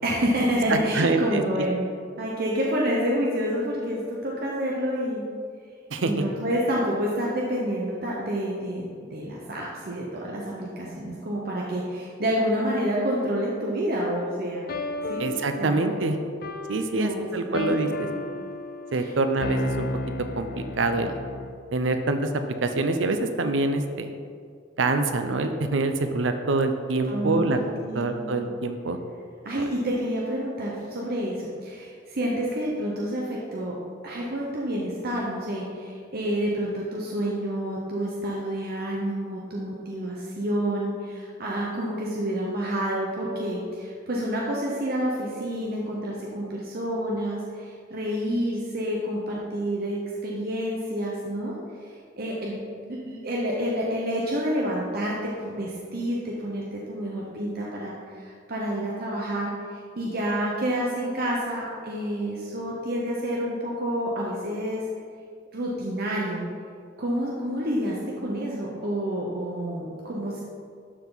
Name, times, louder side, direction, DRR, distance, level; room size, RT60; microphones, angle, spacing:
voice 1, 0.0-1.9 2.2-5.2 6.0-14.7 15.0-15.3 15.6-15.8 16.9-17.7 18.0-18.1 18.9-19.1 27.0-28.2 29.4-33.7 34.0-51.5 51.8-64.8 65.5-66.4 67.0-70.4, equal, 55° right, -3 dB, 1.0 m, -29 dB
voice 2, 0.7-1.4 5.9-6.1 15.2-16.2 16.7-18.1 18.9-19.9 20.4-21.2 21.7-22.3 22.6-24.1 24.8-29.0 29.6-29.7, right 3 dB, 90° right, 7 dB, 0.6 m, -25 dB
sound 1, 14.7-21.6, left 2 dB, 55° left, 0.6 m, -34 dB
12.0 x 4.7 x 4.0 m, 2.2 s
head